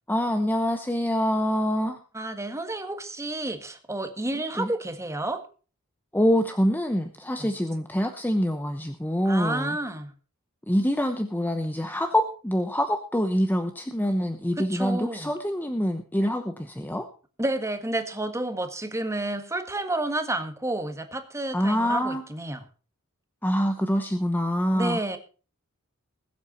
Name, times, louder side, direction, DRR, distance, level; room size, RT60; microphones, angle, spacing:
voice 1, 0.1-2.0 4.6-4.7 6.1-9.8 10.7-17.1 21.5-22.2 23.4-25.0, equal, 10° left, 7 dB, 0.9 m, -25 dB
voice 2, 2.1-5.4 7.4-7.5 9.2-10.1 14.6-15.3 17.4-22.6 24.7-25.2, right 2 dB, 15° right, 8 dB, 1.6 m, -30 dB
20.5 x 8.1 x 4.3 m, 0.36 s
head